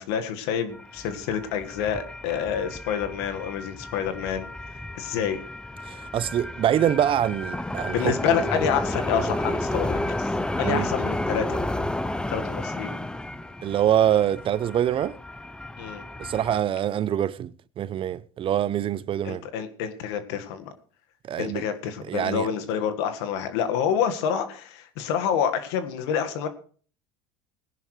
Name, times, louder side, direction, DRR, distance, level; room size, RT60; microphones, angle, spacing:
voice 1, 0.0-5.4 7.9-11.6 12.3-13.0 15.8-16.0 19.2-20.7 21.4-26.5, left 8 dB, 80° left, 1.6 m, -28 dB
sound 1, 0.7-16.6, left 1 dB, 5° left, 0.7 m, -32 dB
voice 2, 5.9-8.1 10.6-10.9 13.6-15.2 16.2-19.4 21.3-21.6 22.1-22.5, right 10 dB, 40° right, 0.6 m, -24 dB
19.5 x 10.5 x 3.2 m
supercardioid pair, 100°, 14 cm